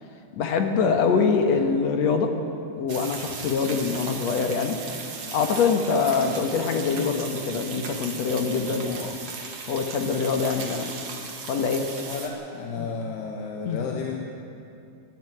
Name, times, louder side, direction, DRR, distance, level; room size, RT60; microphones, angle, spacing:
voice 1, 0.4-2.4 2.8-4.8 5.3-9.2 9.7-10.9 11.5-11.9 12.8-12.9 13.7-13.9, left 5 dB, 60° left, 5 dB, 2.0 m, -24 dB
sound 1, 2.9-12.3, right 5 dB, 45° right, 2.7 m, -37 dB
voice 2, 12.1-14.2, left 5 dB, 85° left, 1 dB, 3.5 m, -32 dB
21.0 x 13.0 x 9.9 m, 2.6 s
omnidirectional pair, 4.5 m